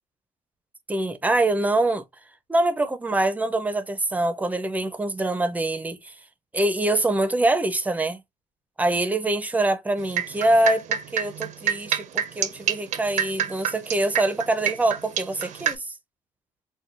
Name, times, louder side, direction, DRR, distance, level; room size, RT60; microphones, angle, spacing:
voice 1, 0.9-2.0 2.5-6.1 6.5-8.2 8.8-15.8, right 2 dB, 10° right, 0.5 m, -24 dB
sound 1, 10.0-15.7, right 9 dB, 65° right, 0.5 m, -26 dB
4.5 x 2.2 x 2.4 m
cardioid pair, 125°, 14 cm